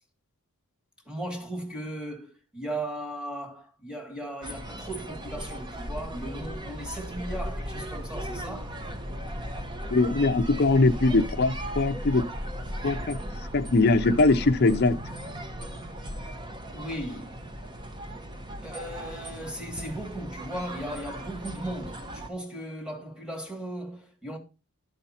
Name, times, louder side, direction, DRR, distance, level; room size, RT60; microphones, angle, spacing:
voice 1, 1.1-8.8 11.1-11.3 16.7-17.4 18.6-24.4, right 1 dB, 5° right, 1.7 m, -37 dB
sound 1, 4.4-22.3, right 1 dB, 20° right, 0.8 m, -39 dB
sound 2, 7.2-16.6, equal, 40° right, 1.1 m, -38 dB
voice 2, 9.9-12.3 12.8-13.2 13.5-15.0, left 3 dB, 45° left, 0.6 m, -22 dB
11.5 x 5.2 x 4.3 m
head